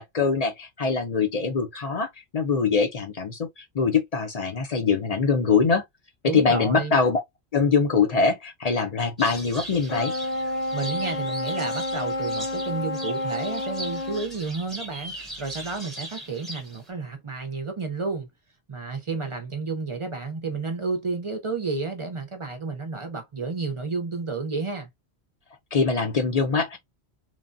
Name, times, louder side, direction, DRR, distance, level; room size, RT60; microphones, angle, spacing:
voice 1, 0.0-5.8 6.3-7.2 7.5-10.1 25.7-26.8, left 5 dB, 50° left, 0.5 m, -23 dB
voice 2, 6.2-7.0 10.7-18.3 18.7-24.9, right 4 dB, 40° right, 0.4 m, -31 dB
sound 1, 9.2-16.9, right 1 dB, ahead, 0.8 m, -40 dB
sound 2, 9.9-14.3, left 1 dB, 80° left, 1.4 m, -29 dB
3.1 x 2.1 x 2.5 m
omnidirectional pair, 1.1 m